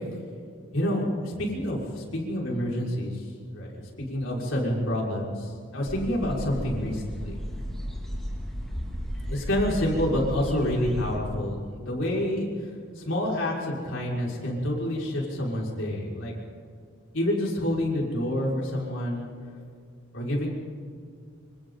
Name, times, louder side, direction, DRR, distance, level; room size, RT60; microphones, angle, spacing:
voice 1, 0.7-3.2 3.5-3.8 4.1-7.4 9.3-12.5 13.0-16.3 17.1-19.3 20.1-20.5, left 1 dB, 60° left, -3 dB, 5.7 m, -28 dB
sound 1, 5.9-11.2, equal, ahead, 4.3 m, -34 dB
28.5 x 26.5 x 4.0 m, 2.2 s
head